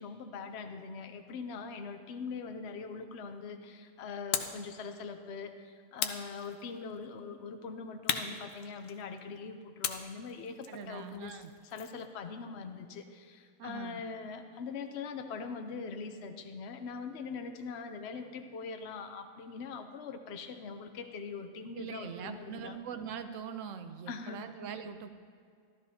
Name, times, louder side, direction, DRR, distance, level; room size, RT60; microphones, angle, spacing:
voice 1, 0.0-11.4 11.7-22.8 24.1-24.5, left 5 dB, 55° left, 7 dB, 0.8 m, -42 dB
sound 1, 4.3-4.7 6.0-6.9 8.1-9.2 9.8-12.0, left 8 dB, 75° left, 1.1 m, -37 dB
voice 2, 10.7-11.5 13.6-14.0 21.7-25.2, right 7 dB, 65° right, 9 dB, 0.9 m, -42 dB
13.0 x 13.0 x 2.8 m, 2.2 s
omnidirectional pair, 1.7 m